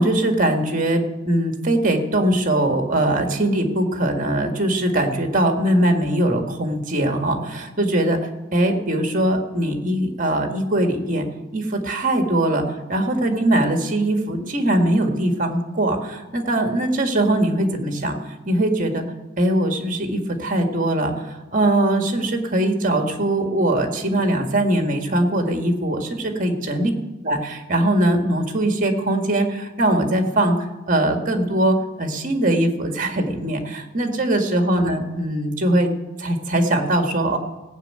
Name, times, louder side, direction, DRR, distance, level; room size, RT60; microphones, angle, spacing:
voice 1, 0.0-11.3 11.5-19.1 19.4-26.9 27.2-30.6 30.9-35.9 36.2-37.4, right 1 dB, 40° right, 5 dB, 1.8 m, -21 dB
16.5 x 6.5 x 8.9 m, 1.1 s
head